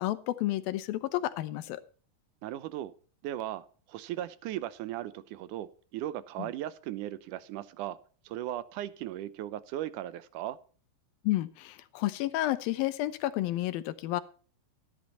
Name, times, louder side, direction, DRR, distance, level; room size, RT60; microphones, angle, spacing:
voice 1, 0.0-1.8 11.2-14.2, left 15 dB, 85° left, 14 dB, 2.7 m, -31 dB
voice 2, 2.4-2.9 3.2-8.0 8.3-10.6, right 13 dB, 75° right, 16 dB, 2.0 m, -37 dB
14.0 x 10.5 x 4.3 m, 0.41 s
omnidirectional pair, 4.1 m